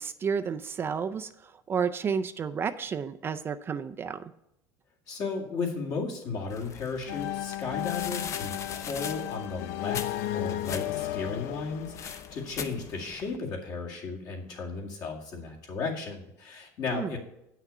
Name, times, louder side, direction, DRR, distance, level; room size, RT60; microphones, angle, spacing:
voice 1, 0.0-4.3 16.9-17.1, right 6 dB, 30° right, 10 dB, 0.4 m, -31 dB
voice 2, 5.1-17.2, left 4 dB, 55° left, 0 dB, 2.1 m, -35 dB
sound 1, 6.5-13.4, left 7 dB, 35° left, 0.6 m, -41 dB
sound 2, 7.1-12.8, left 15 dB, 80° left, 0.4 m, -34 dB
8.2 x 6.0 x 5.4 m, 0.84 s
cardioid pair, 130°, 8 cm